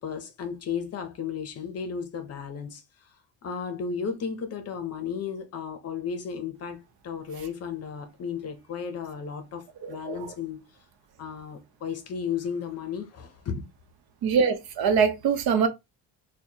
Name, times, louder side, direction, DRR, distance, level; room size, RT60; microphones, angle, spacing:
voice 1, 0.0-2.8 3.4-10.6 11.2-13.6, left 6 dB, 40° left, 0.7 m, -34 dB
voice 2, 9.8-10.2 14.2-15.7, right 6 dB, 70° right, 0.8 m, -23 dB
4.5 x 2.2 x 2.8 m
cardioid pair, 170°, 38 cm